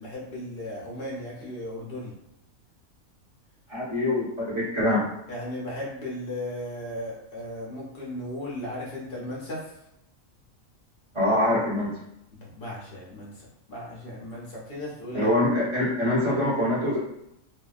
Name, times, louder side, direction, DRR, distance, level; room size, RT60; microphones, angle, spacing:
voice 1, 0.0-2.2 5.3-9.8 12.3-15.3, left 1 dB, 55° left, -5 dB, 0.7 m, -36 dB
voice 2, 3.7-5.1 11.1-12.0 15.1-17.0, left 1 dB, 25° right, -8 dB, 0.9 m, -24 dB
2.6 x 2.2 x 2.3 m, 0.81 s
omnidirectional pair, 1.4 m